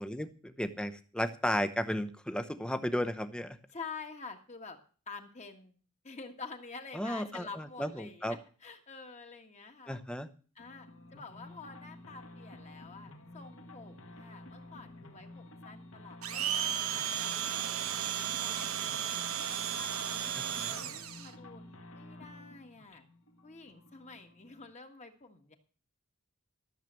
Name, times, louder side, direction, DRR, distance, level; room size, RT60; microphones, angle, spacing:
voice 1, 0.0-3.6 6.9-8.4 9.9-10.3 20.4-20.8, equal, 5° left, 10 dB, 0.8 m, -34 dB
voice 2, 3.7-4.8 5.1-5.8 6.0-10.0 10.5-17.3 17.6-20.2 20.7-21.6 21.9-23.0 23.4-25.5, left 4 dB, 30° left, 5 dB, 1.6 m, -48 dB
sound 1, 10.6-24.7, left 1 dB, 60° left, 1.9 m, -51 dB
Domestic sounds home sounds, 16.2-21.3, right 9 dB, 70° right, 1.2 m, -34 dB
13.5 x 7.4 x 7.6 m, 0.40 s
head